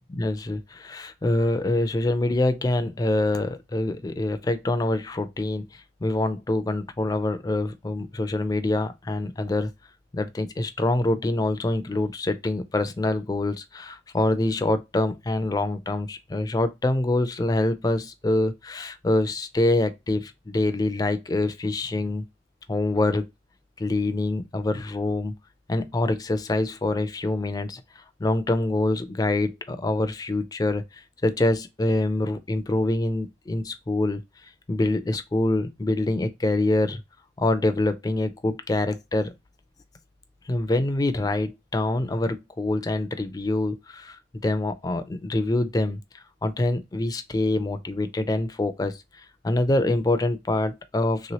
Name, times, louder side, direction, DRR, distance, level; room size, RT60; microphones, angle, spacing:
voice 1, 0.2-9.7 10.1-22.2 22.7-23.3 23.8-25.3 25.7-34.2 34.7-37.0 37.4-39.3 40.5-46.0 46.4-51.3, left 2 dB, 20° left, 0.3 m, -25 dB
3.1 x 3.0 x 2.8 m
head